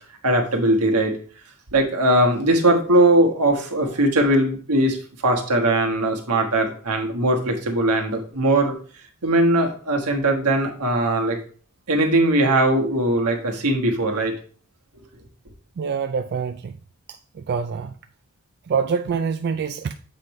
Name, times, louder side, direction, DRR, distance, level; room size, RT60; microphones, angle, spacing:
voice 1, 0.2-1.1 1.7-8.7 9.2-11.4 11.9-14.3, right 1 dB, 80° right, 1.4 m, -20 dB
voice 2, 15.8-16.7 17.5-17.9 18.7-20.0, right 6 dB, 45° right, 0.4 m, -25 dB
7.6 x 5.3 x 3.1 m
head